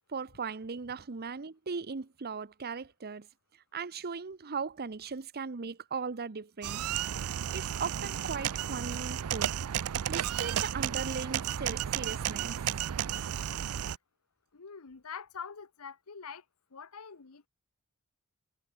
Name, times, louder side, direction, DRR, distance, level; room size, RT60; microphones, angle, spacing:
voice 1, 0.1-3.3 3.7-6.9 7.5-9.5 10.1-12.6, right 5 dB, 45° right, 0.8 m, -38 dB
sound 1, 6.6-14.0, right 10 dB, 80° right, 0.5 m, -33 dB
voice 2, 14.5-16.4 16.7-17.5, left 6 dB, 85° left, 1.0 m, -45 dB
head